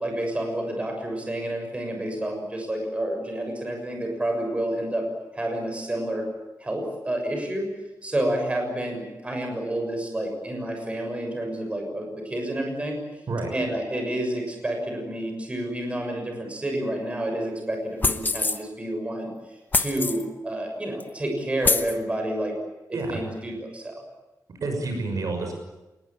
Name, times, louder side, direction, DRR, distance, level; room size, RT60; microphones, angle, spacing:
voice 1, 0.0-5.1 5.3-6.3 6.6-7.7 8.0-13.0 13.5-19.3 19.7-22.5 23.1-24.0, right 1 dB, 20° right, 3 dB, 6.8 m, -29 dB
sound 1, 18.0-18.6 19.7-20.2 21.0-21.1 21.6-21.9, left 3 dB, 30° left, 1.2 m, -24 dB
voice 2, 22.9-23.2 24.6-25.5, right 2 dB, 55° right, 4 dB, 6.2 m, -28 dB
27.0 x 21.0 x 8.9 m, 1.0 s
wide cardioid pair, 170°, 7 cm